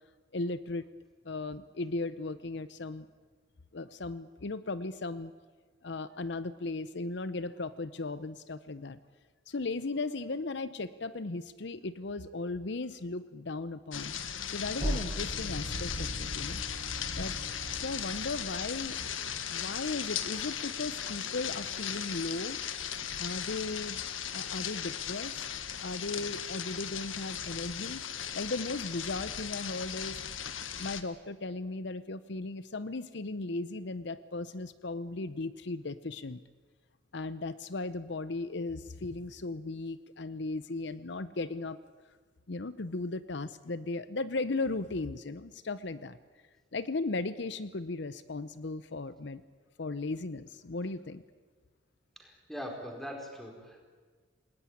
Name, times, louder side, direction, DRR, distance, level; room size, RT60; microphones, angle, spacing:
voice 1, 0.3-0.9 1.2-3.1 3.7-5.3 5.8-9.0 9.5-14.1 14.5-16.6 17.2-17.3 17.7-19.0 19.5-22.6 23.2-24.0 24.3-25.4 25.8-28.0 28.3-30.2 30.8-36.4 37.1-41.8 42.5-46.2 46.7-49.4 49.8-51.2, left 3 dB, 60° left, 14 dB, 0.7 m, -36 dB
sound 1, 13.9-31.0, left 8 dB, 85° left, 1.6 m, -37 dB
sound 2, 14.8-19.5, right 1 dB, 30° right, 1.1 m, -41 dB
voice 2, 52.2-53.9, equal, ahead, 2 dB, 4.7 m, -42 dB
28.0 x 19.5 x 9.9 m, 1.5 s
head